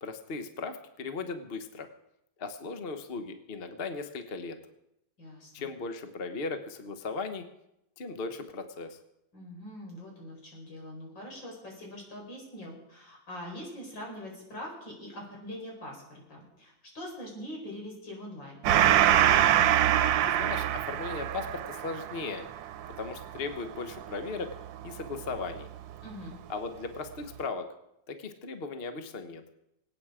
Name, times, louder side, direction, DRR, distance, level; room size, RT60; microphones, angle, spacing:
voice 1, 0.0-1.9 2.4-4.6 5.5-7.5 8.0-9.0 20.3-22.5 23.0-24.5 24.8-25.7 26.5-27.7 28.1-29.4, left 4 dB, 40° left, 8 dB, 1.1 m, -37 dB
voice 2, 5.2-5.7 9.3-18.6 26.0-26.4, left 1 dB, 85° left, -1 dB, 5.3 m, -43 dB
Gong, 18.6-25.6, right 11 dB, 85° right, 1.4 m, -25 dB
24.5 x 9.0 x 4.9 m, 0.84 s
omnidirectional pair, 2.0 m